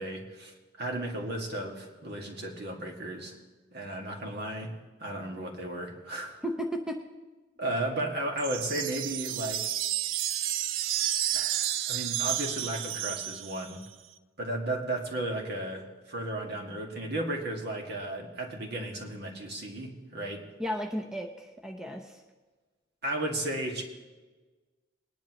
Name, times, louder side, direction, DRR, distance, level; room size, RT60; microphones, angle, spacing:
voice 1, 0.0-3.4 3.7-4.7 5.0-6.4 7.6-9.7 11.3-13.8 14.4-20.4 23.0-23.8, right 1 dB, 55° right, 0 dB, 2.1 m, -34 dB
voice 2, 6.4-7.0 20.6-22.2, equal, 5° right, 2 dB, 0.7 m, -34 dB
sound 1, 8.4-13.9, right 12 dB, 80° right, 0.5 m, -31 dB
20.5 x 10.5 x 3.1 m, 1.3 s
head